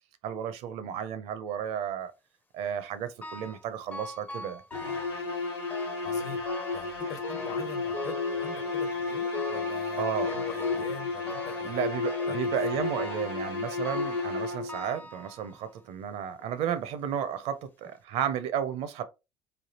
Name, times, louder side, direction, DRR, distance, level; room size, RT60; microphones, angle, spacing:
voice 1, 0.2-2.1 2.5-4.6 10.0-10.3 11.6-19.0, right 9 dB, 60° right, 0.5 m, -33 dB
sound 1, 3.2-3.7 3.9-5.2 5.7-6.1 6.5-6.9 7.2-8.9 9.3-9.8 10.3-11.0 11.3-11.7 12.0-12.5 12.9-13.4 13.8-14.3 14.7-15.8 16.4-16.5 17.3-17.4 17.9-18.0, left 2 dB, 15° left, 0.4 m, -41 dB
sound 2, 4.7-14.9, left 4 dB, 85° left, 1.0 m, -32 dB
voice 2, 6.0-6.4 6.7-11.8 12.3-12.4 12.7-12.8, left 5 dB, 65° left, 1.0 m, -43 dB
3.3 x 2.3 x 2.8 m
hypercardioid pair, 70°, 13 cm